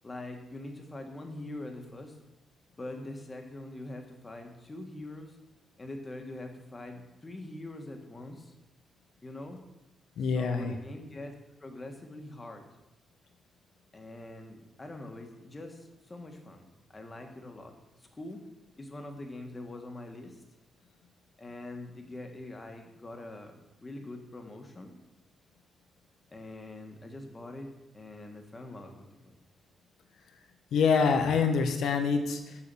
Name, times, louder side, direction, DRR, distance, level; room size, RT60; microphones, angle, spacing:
voice 1, 0.0-2.2 2.8-5.4 5.8-8.5 9.2-9.6 10.2-11.3 11.6-12.7 13.9-16.7 16.9-18.4 18.8-20.4 21.4-23.5 23.8-25.0 26.3-29.4, left 2 dB, 30° left, 4 dB, 1.6 m, -43 dB
voice 2, 10.2-10.7 30.7-32.6, left 5 dB, 85° left, 6 dB, 1.1 m, -26 dB
7.2 x 4.8 x 7.0 m, 0.95 s
cardioid pair, 80°, 0 cm